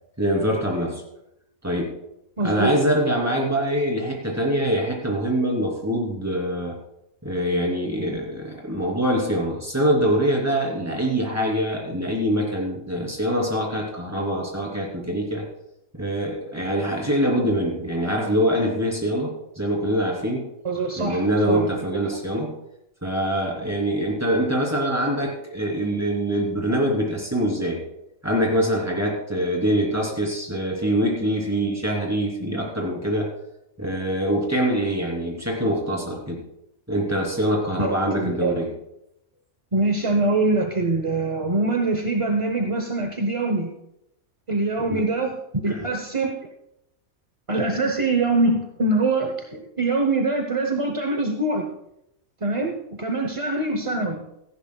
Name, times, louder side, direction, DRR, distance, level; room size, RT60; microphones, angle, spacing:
voice 1, 0.2-1.0 1.6-2.0 2.4-6.8 7.2-15.4 15.9-20.5 21.0-22.5 23.0-27.8 28.2-33.3 33.8-36.4 36.9-38.7 44.9-45.0 45.7-45.8, equal, 10° right, -2 dB, 3.1 m, -24 dB
voice 2, 2.4-2.8 20.6-21.7 22.1-22.2 37.8-38.6 39.7-43.7 44.5-46.3 47.5-51.7 52.4-54.2, right 2 dB, 30° right, 4 dB, 0.8 m, -24 dB
17.0 x 14.5 x 2.3 m, 0.83 s
omnidirectional pair, 1.5 m